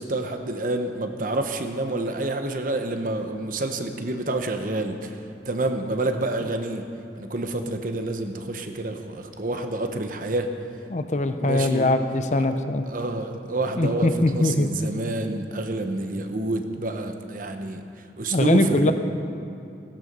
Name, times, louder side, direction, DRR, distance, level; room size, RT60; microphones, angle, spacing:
voice 1, 0.0-5.2 5.5-10.5 11.4-11.9 12.4-12.5 12.9-17.8 18.2-18.9, right 2 dB, 50° right, 6 dB, 1.0 m, -28 dB
voice 2, 10.9-12.8 13.8-14.7 18.3-18.9, left 2 dB, 40° left, 9 dB, 0.7 m, -22 dB
16.0 x 12.5 x 5.5 m, 2.5 s
head